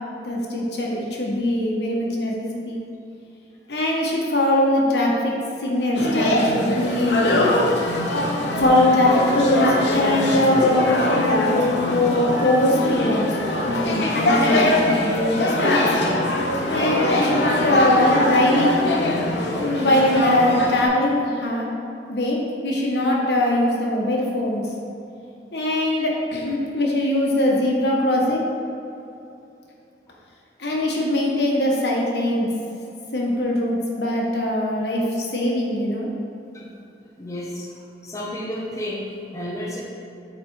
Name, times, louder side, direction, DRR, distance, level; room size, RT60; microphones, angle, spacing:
voice 1, 0.2-2.8 3.7-5.3 5.6-7.3 8.6-15.8 16.7-18.8 19.5-21.8 22.1-22.4 22.6-24.6 25.5-28.5 30.6-32.5 33.1-35.0 35.3-36.1, left 1 dB, 70° left, -2 dB, 1.3 m, -21 dB
sound 1, 5.9-20.9, left 1 dB, 85° left, 1.0 m, -22 dB
voice 2, 37.2-37.7 38.0-39.8, left 1 dB, 20° left, -4 dB, 0.8 m, -32 dB
8.2 x 4.1 x 4.6 m, 2.7 s
head